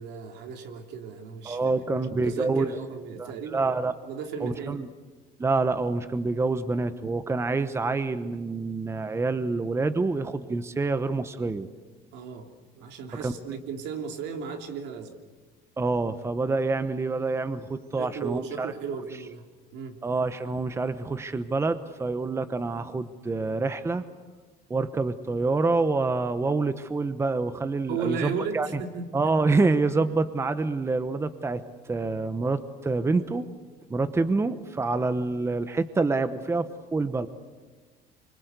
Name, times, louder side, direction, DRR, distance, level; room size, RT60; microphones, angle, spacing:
voice 1, 0.0-1.7 2.2-3.7 4.0-4.8 12.1-15.2 17.5-17.7 18.0-20.0 27.9-29.1, right 6 dB, 80° right, 4 dB, 3.1 m, -35 dB
voice 2, 1.4-2.7 3.2-3.9 4.4-4.9 5.4-11.7 13.2-13.3 15.8-18.7 20.0-24.0 24.7-28.8 29.1-33.5 33.9-37.3, right 3 dB, 15° right, 12 dB, 0.9 m, -27 dB
26.0 x 24.5 x 8.2 m, 1.3 s
cardioid pair, 140°, 17 cm